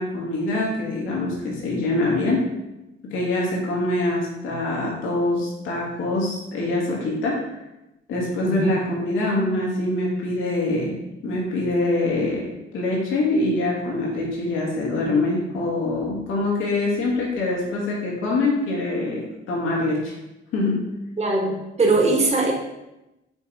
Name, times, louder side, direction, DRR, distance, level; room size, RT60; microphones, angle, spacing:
voice 1, 0.0-2.4 3.0-7.4 8.1-11.0 11.2-12.5 12.7-20.1 20.5-20.9, left 2 dB, 90° left, -3 dB, 2.2 m, -24 dB
voice 2, 8.4-8.7 21.2-22.5, right 2 dB, 35° right, 0 dB, 1.7 m, -21 dB
6.9 x 4.1 x 4.8 m, 0.95 s
cardioid pair, 90°, 20 cm